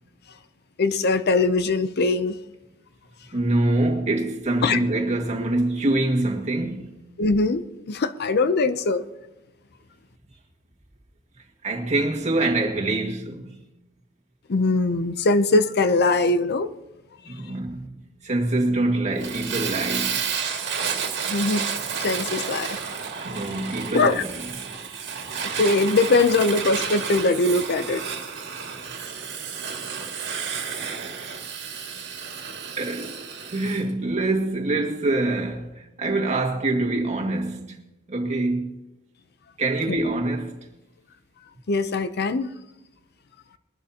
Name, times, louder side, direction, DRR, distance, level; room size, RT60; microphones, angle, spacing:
voice 1, 0.8-2.4 4.6-4.8 7.2-7.6 7.9-9.0 14.5-16.7 21.3-21.7 22.0-22.8 23.9-24.2 25.6-28.0 41.7-42.5, left 3 dB, 50° left, 0.6 m, -21 dB
voice 2, 3.3-7.0 11.6-13.6 17.3-18.0 18.2-20.3 23.2-24.5 31.6-32.0 32.8-33.2 33.5-37.8 38.1-38.8 39.6-40.7, right 2 dB, 30° right, 1.9 m, -25 dB
Fire, 19.2-33.8, right 6 dB, 50° right, 2.1 m, -31 dB
21.5 x 12.0 x 2.9 m
head